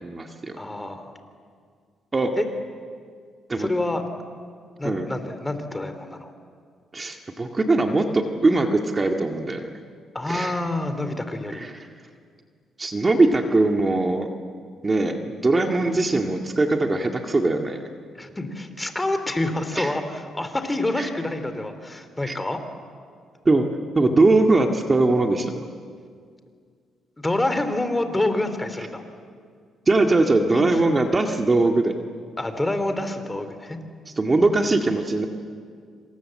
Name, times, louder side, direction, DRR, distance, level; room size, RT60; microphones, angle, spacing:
voice 1, 0.0-0.5 2.1-2.3 3.5-3.7 4.8-5.1 6.9-9.7 10.3-10.6 11.5-11.7 12.8-14.3 14.8-17.8 19.8-19.9 21.0-21.1 22.3-22.4 23.5-23.6 24.0-25.6 29.9-32.0 34.2-35.3, right 2 dB, 25° right, 3 dB, 1.9 m, -21 dB
voice 2, 0.6-1.2 2.4-2.5 3.6-4.0 4.8-6.3 10.1-11.7 18.1-22.6 27.2-29.0 30.5-30.6 32.4-33.8, left 2 dB, 15° left, 9 dB, 3.0 m, -27 dB
27.0 x 26.0 x 7.7 m, 2.1 s
cardioid pair, 90°, 0 cm